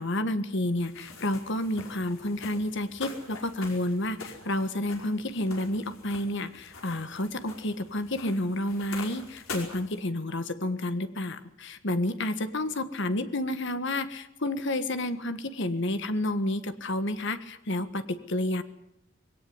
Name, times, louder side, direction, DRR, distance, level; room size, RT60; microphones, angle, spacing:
voice 1, 0.0-18.6, left 1 dB, 60° left, 10 dB, 1.6 m, -30 dB
sound 1, 0.8-10.0, left 3 dB, 80° left, 5.3 m, -45 dB
20.5 x 18.0 x 9.5 m, 0.83 s
head